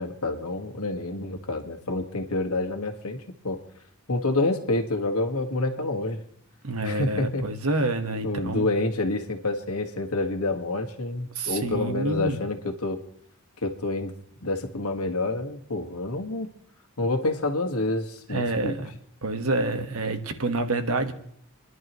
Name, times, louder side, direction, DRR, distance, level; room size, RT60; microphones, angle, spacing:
voice 1, 0.0-3.6 4.1-6.2 6.8-7.5 8.2-13.0 13.6-14.1 14.4-16.5 17.0-18.8, left 2 dB, 85° left, 4 dB, 1.7 m, -28 dB
voice 2, 6.6-8.7 11.3-12.4 18.3-18.9 19.2-21.1, right 2 dB, 80° right, 7 dB, 1.4 m, -27 dB
29.5 x 11.0 x 3.1 m, 0.69 s
head